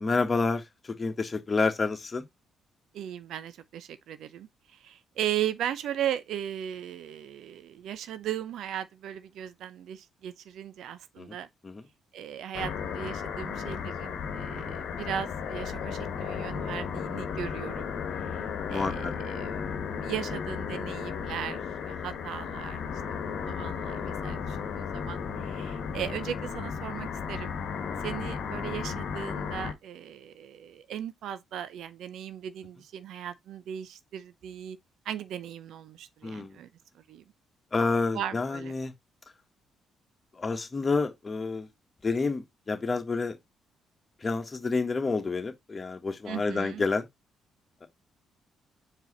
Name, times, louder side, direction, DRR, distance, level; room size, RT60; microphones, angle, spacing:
voice 1, 0.0-2.2 11.2-11.3 11.6-11.8 14.5-14.8 18.7-19.1 19.5-19.6 23.9-24.1 27.9-28.0 36.2-36.6 37.7-38.9 40.3-41.7 42.0-43.4 44.2-47.1 47.8-47.9, left 4 dB, 35° left, 1.5 m, -29 dB
voice 2, 2.9-11.5 12.1-17.9 18.3-18.4 18.7-19.7 20.0-22.8 23.2-27.5 28.0-34.8 35.0-36.7 36.9-37.2 38.1-38.7 46.3-46.9, right 10 dB, 70° right, 0.6 m, -37 dB
sound 1, 12.5-29.7, left 6 dB, 70° left, 1.2 m, -34 dB
4.9 x 4.7 x 4.1 m
hypercardioid pair, 50°, 0 cm